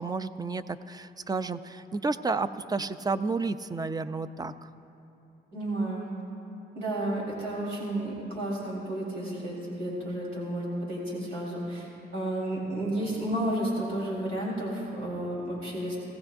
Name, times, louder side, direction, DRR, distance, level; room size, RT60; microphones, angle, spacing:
voice 1, 0.0-4.7, right 3 dB, 20° right, 12 dB, 0.5 m, -31 dB
voice 2, 5.5-6.1 6.7-16.0, right 1 dB, 90° right, -5 dB, 3.9 m, -32 dB
20.0 x 16.5 x 2.6 m, 2.8 s
cardioid pair, 90°, 20 cm